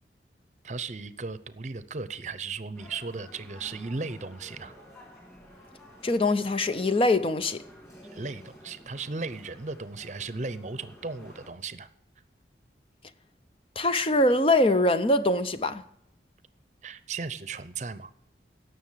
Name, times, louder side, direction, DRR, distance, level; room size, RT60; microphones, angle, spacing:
voice 1, 0.6-4.7 8.1-11.9 16.8-18.1, right 4 dB, 40° right, 0.7 m, -36 dB
sound 1, 2.7-11.5, equal, 15° left, 3.3 m, -51 dB
voice 2, 6.0-7.6 13.8-15.8, left 2 dB, 30° left, 0.6 m, -23 dB
17.5 x 6.8 x 7.4 m
head